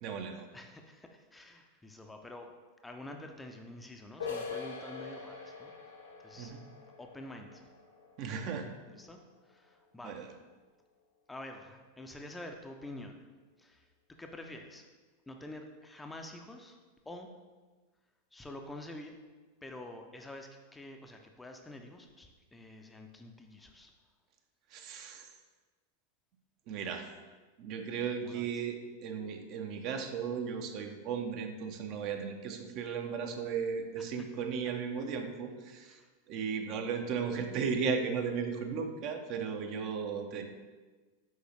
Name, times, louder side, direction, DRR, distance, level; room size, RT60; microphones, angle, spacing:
voice 1, 0.0-0.5 6.4-6.6 8.2-8.7 10.0-10.3 24.7-25.3 26.7-27.1 27.6-36.0 36.3-40.4, right 6 dB, 40° right, 5 dB, 0.6 m, -35 dB
voice 2, 0.5-2.5 2.8-6.0 6.2-6.5 7.0-7.7 8.9-10.2 11.3-13.2 13.6-14.9 15.3-16.8 17.1-17.3 18.3-19.2 19.6-23.9 28.2-28.5 34.0-34.3 35.8-36.1, left 1 dB, 10° left, 4 dB, 0.5 m, -48 dB
sound 1, 4.2-9.7, left 5 dB, 65° left, 0.9 m, -44 dB
6.4 x 4.7 x 3.2 m, 1.3 s
figure-of-eight pair, 90°, 0 cm